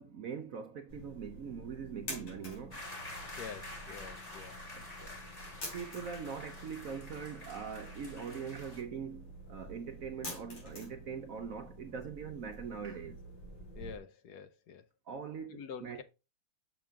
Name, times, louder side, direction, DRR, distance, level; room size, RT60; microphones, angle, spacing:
voice 1, 0.0-2.8 4.7-4.8 5.7-13.2 15.1-16.0, right 6 dB, 65° right, 0.9 m, -42 dB
sound 1, 0.9-14.0, equal, 90° left, 3.7 m, -48 dB
sound 2, 2.7-8.8, left 2 dB, 20° left, 1.5 m, -48 dB
voice 2, 3.4-4.6 5.0-5.2 13.7-14.9 15.5-16.0, left 7 dB, 70° left, 1.1 m, -47 dB
6.5 x 6.0 x 3.5 m
omnidirectional pair, 2.0 m